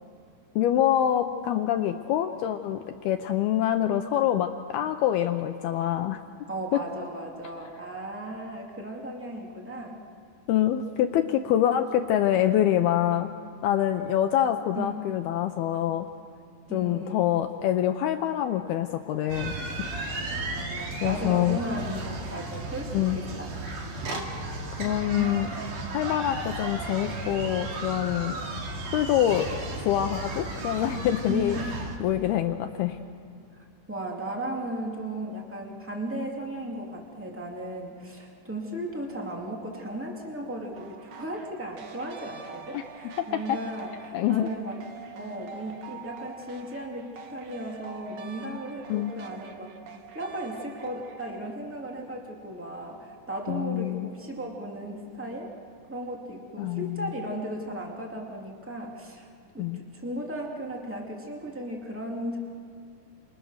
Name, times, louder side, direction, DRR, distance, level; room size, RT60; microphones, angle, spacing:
voice 1, 0.6-6.2 6.7-6.8 10.5-13.3 13.6-16.1 16.7-19.5 21.0-21.6 22.9-23.2 24.8-25.5 25.9-28.3 28.9-29.5 29.8-31.6 32.0-33.0 42.7-42.8 43.5-43.6 44.1-44.5 48.9-49.2 53.5-54.1 56.6-57.1 59.6-59.8, left 11 dB, 80° left, 6 dB, 2.2 m, -25 dB
voice 2, 6.5-10.0 14.7-15.0 16.7-17.3 20.4-23.5 24.9-25.3 31.3-31.6 33.9-44.8 45.1-49.7 50.1-55.5 55.9-59.3 59.5-62.4, right 1 dB, 20° right, 0 dB, 0.3 m, -36 dB
sound 1, 19.3-32.0, right 2 dB, 50° right, 3.3 m, -34 dB
sound 2, 40.8-51.5, right 5 dB, 85° right, 1.4 m, -46 dB
29.5 x 29.0 x 6.5 m, 2.4 s
omnidirectional pair, 5.4 m